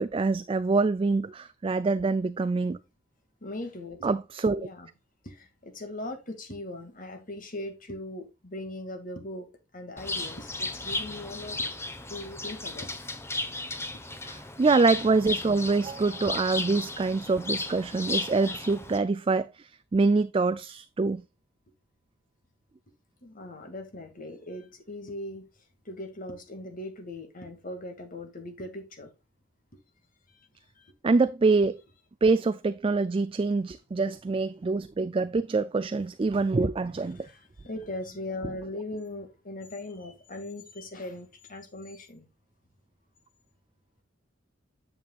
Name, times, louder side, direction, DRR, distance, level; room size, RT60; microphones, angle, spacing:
voice 1, 0.0-2.8 4.0-4.7 14.2-21.2 31.0-31.8 32.2-37.3, right 3 dB, 25° right, 0.4 m, -25 dB
voice 2, 3.4-4.2 4.6-4.9 5.2-11.7 12.1-12.9 23.2-25.5 25.9-29.1 30.3-30.5 30.8-30.9 37.2-42.3, left 1 dB, 45° left, 2.2 m, -39 dB
Bird, 10.0-19.0, left 2 dB, 15° left, 1.1 m, -35 dB
9.1 x 7.1 x 2.4 m
head